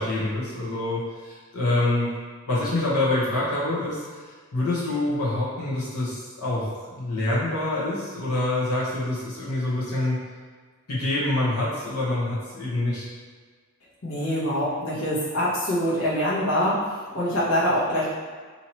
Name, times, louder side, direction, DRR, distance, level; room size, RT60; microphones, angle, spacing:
voice 1, 0.0-2.1 2.5-4.2 4.5-10.2 10.9-13.1, left 2 dB, 90° left, -8 dB, 1.0 m, -26 dB
voice 2, 14.0-18.1, equal, 70° left, -8 dB, 1.0 m, -24 dB
2.9 x 2.8 x 4.3 m, 1.5 s
head